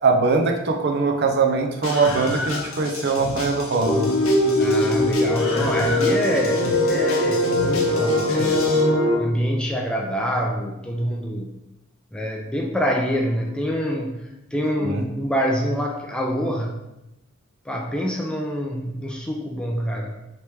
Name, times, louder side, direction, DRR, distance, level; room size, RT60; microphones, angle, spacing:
voice 1, 0.0-4.0 14.8-15.0, right 4 dB, 50° right, 2 dB, 0.5 m, -21 dB
Screaming, 1.8-8.8, left 2 dB, 75° left, 0.7 m, -32 dB
sound 1, 3.8-9.2, left 1 dB, 45° left, 1.3 m, -21 dB
voice 2, 4.5-8.7 9.2-11.6 12.1-16.8 17.7-20.3, equal, 5° left, 0 dB, 0.3 m, -26 dB
3.3 x 2.9 x 4.6 m, 0.95 s
head